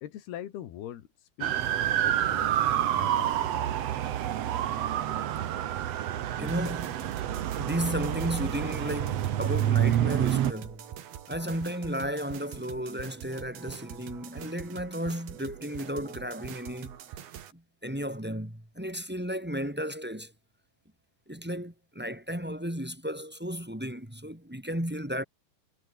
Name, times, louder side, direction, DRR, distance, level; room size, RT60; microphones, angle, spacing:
voice 1, 0.0-2.5 2.9-3.7, left 11 dB, 70° left, 3.8 m, -43 dB
sound 1, 1.4-10.5, right 11 dB, 90° right, 1.4 m, -28 dB
voice 2, 6.4-7.1 7.6-10.9 11.3-17.0 17.5-20.3 21.3-25.2, equal, 5° right, 2.0 m, -34 dB
sound 2, 6.5-17.5, right 10 dB, 65° right, 4.0 m, -44 dB
omnidirectional pair, 4.8 m